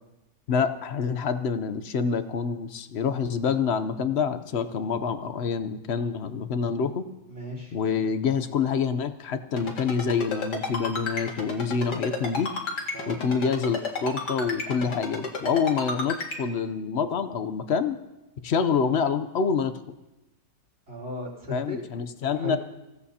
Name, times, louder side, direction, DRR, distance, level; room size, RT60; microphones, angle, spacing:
voice 1, 0.5-7.1 7.7-12.5 13.1-18.0 18.4-19.7 21.5-22.6, left 6 dB, 55° left, 11 dB, 0.7 m, -27 dB
voice 2, 7.3-7.7 12.9-13.2 20.9-21.8 22.4-22.6, left 2 dB, 40° right, -2 dB, 4.0 m, -35 dB
Ringtone, 9.6-16.4, left 3 dB, 80° left, 2.7 m, -31 dB
24.5 x 16.5 x 2.8 m, 1.0 s
omnidirectional pair, 1.8 m